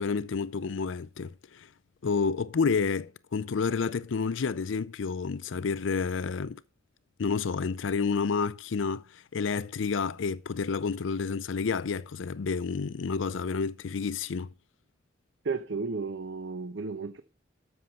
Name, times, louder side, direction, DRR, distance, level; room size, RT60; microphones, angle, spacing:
voice 1, 0.0-1.7 2.0-6.6 7.2-14.5, left 5 dB, 75° left, 0.5 m, -30 dB
voice 2, 15.4-17.2, right 4 dB, 65° right, 0.8 m, -33 dB
13.5 x 6.3 x 5.4 m
head